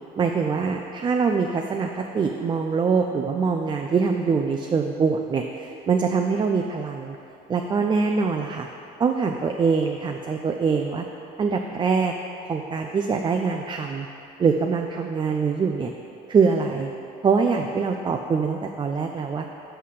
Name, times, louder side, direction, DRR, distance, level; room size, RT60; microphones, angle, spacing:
voice 1, 0.2-7.2 7.5-8.7 9.0-11.1 11.4-12.1 12.5-14.1 14.4-15.9 16.3-16.9 17.2-19.5, right 5 dB, 30° right, 3 dB, 0.4 m, -23 dB
5.7 x 5.6 x 6.5 m, 2.8 s
cardioid pair, 110°, 17 cm